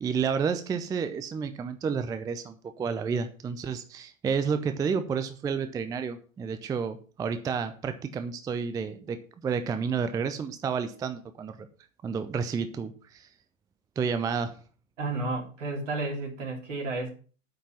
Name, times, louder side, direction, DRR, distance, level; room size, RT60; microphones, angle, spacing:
voice 1, 0.0-9.2 9.4-11.7 12.0-13.3 14.0-14.5, right 6 dB, 10° right, 0.5 m, -30 dB
voice 2, 15.0-17.1, right 2 dB, 65° right, 3.4 m, -32 dB
8.8 x 5.9 x 7.0 m
figure-of-eight pair, 95°, 40 cm